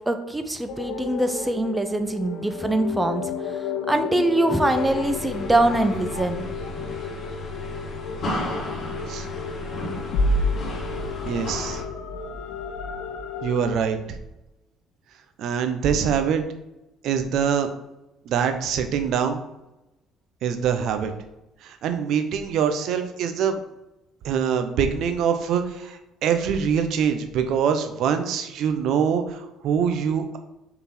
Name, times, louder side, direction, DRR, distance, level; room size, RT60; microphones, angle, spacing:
voice 1, 0.1-3.2 3.5-6.5, right 2 dB, 10° right, 8 dB, 0.8 m, -23 dB
sound 1, 0.7-13.7, left 3 dB, 65° left, 0.7 m, -31 dB
sound 2, 4.7-11.8, left 1 dB, 45° left, 1.7 m, -33 dB
voice 2, 11.3-11.8 13.4-14.0 15.4-16.4 17.0-17.7 18.3-19.4 20.4-21.1 21.6-23.6 24.2-30.4, right 7 dB, 65° right, 7 dB, 0.8 m, -24 dB
5.7 x 4.0 x 4.4 m, 0.94 s
hypercardioid pair, 55°, 0 cm